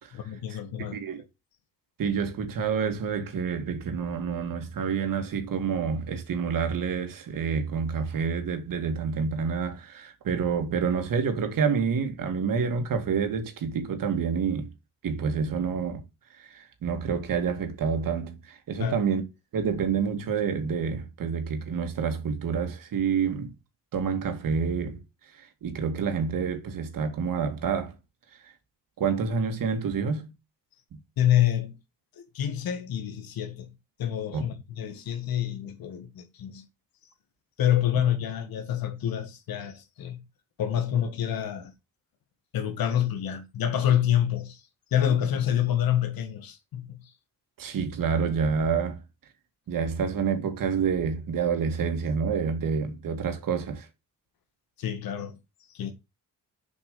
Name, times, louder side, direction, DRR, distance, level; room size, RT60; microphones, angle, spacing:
voice 1, 0.1-1.0 18.8-19.0 31.2-31.8 32.2-33.7 34.0-36.6 37.6-40.2 40.6-41.7 42.5-44.6 44.9-47.1 54.8-55.4 55.7-55.9, left 10 dB, 90° left, 1.9 m, -27 dB
voice 2, 0.9-1.2 2.0-14.7 15.0-16.0 16.4-19.2 19.5-23.5 23.9-25.0 25.6-27.9 29.0-30.3 30.9-31.0 34.3-34.4 47.6-49.0 49.7-53.9, right 6 dB, 70° right, 2.4 m, -28 dB
7.3 x 5.4 x 6.9 m
cardioid pair, 115°, 34 cm